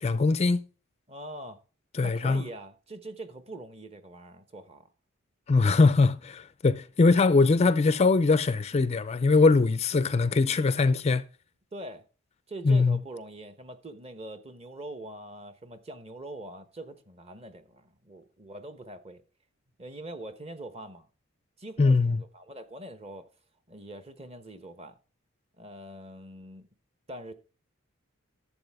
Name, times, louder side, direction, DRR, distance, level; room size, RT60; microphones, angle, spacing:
voice 1, 0.0-0.6 1.9-2.4 5.5-11.2 12.6-13.0 21.8-22.2, left 3 dB, 30° left, 0.4 m, -22 dB
voice 2, 1.1-1.6 2.0-4.8 11.7-12.0 12.5-19.2 19.8-21.1 21.6-23.3 23.7-24.9 25.6-26.7 27.1-27.3, right 1 dB, 30° right, 1.0 m, -43 dB
12.0 x 7.3 x 3.5 m
head